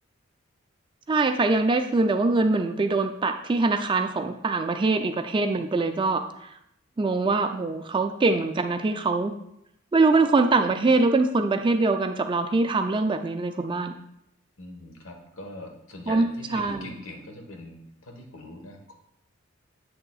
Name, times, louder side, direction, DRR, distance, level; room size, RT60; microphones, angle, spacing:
voice 1, 1.1-6.2 7.0-9.3 9.9-13.9 16.1-16.9, right 3 dB, 25° right, 7 dB, 0.3 m, -23 dB
voice 2, 14.6-18.9, left 1 dB, 70° left, 2 dB, 1.2 m, -41 dB
7.8 x 6.5 x 2.3 m, 0.78 s
head